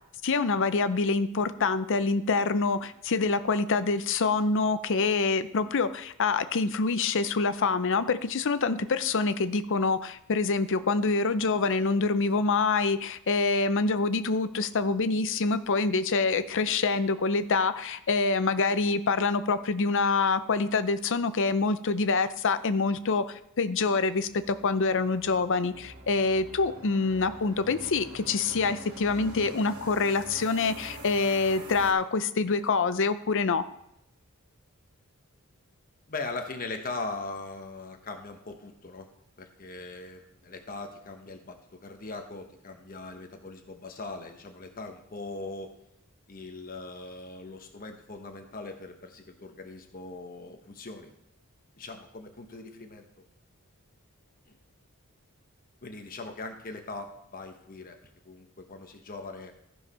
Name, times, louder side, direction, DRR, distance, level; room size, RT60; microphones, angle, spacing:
voice 1, 0.2-33.7, left 4 dB, 60° left, 12 dB, 0.6 m, -26 dB
sound 1, 24.1-31.9, right 1 dB, 75° right, 2.2 m, -45 dB
voice 2, 36.1-39.1 39.4-45.7 46.3-51.1 51.8-53.0 54.5-54.6 55.8-58.0 58.2-59.5, left 3 dB, 40° left, 5 dB, 1.1 m, -40 dB
14.5 x 4.8 x 5.6 m, 0.81 s
head